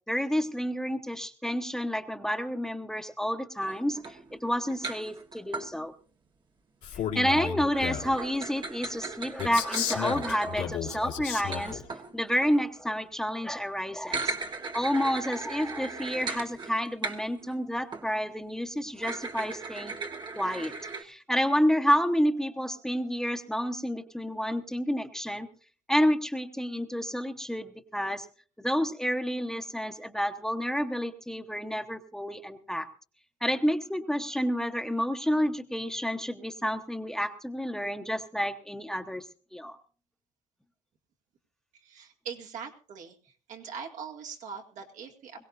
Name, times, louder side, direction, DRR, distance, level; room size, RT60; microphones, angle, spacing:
voice 1, 0.1-5.9 7.1-11.8 12.1-14.3 14.7-19.9 20.3-25.5 25.9-28.3 28.6-32.9 33.4-39.2 39.5-39.8, equal, 5° left, 7 dB, 1.1 m, -29 dB
sound 1, 3.6-5.7 7.7-12.7 13.9-17.6 17.9-18.1 19.0-21.0, right 3 dB, 35° right, 1.5 m, -38 dB
Male speech man speaking, 6.8-8.2 9.4-11.8, left 9 dB, 75° left, 2.1 m, -33 dB
voice 2, 41.8-43.2 43.5-45.5, right 6 dB, 70° right, 2 dB, 2.3 m, -41 dB
21.5 x 16.5 x 2.6 m, 0.39 s
cardioid pair, 95°, 13 cm